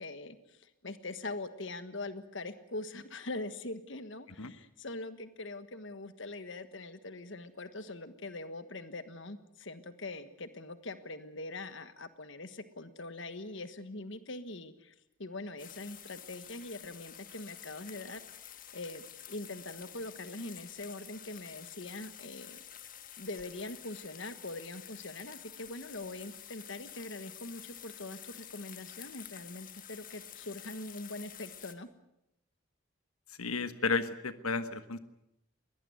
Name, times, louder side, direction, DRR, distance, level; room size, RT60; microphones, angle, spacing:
voice 1, 0.0-22.6 23.2-31.9, left 2 dB, 60° left, 11 dB, 1.5 m, -43 dB
sound 1, 15.6-31.7, left 10 dB, 40° left, 1.5 m, -50 dB
voice 2, 33.3-35.0, left 4 dB, 85° left, 11 dB, 1.3 m, -33 dB
22.0 x 18.0 x 9.3 m, 0.83 s
head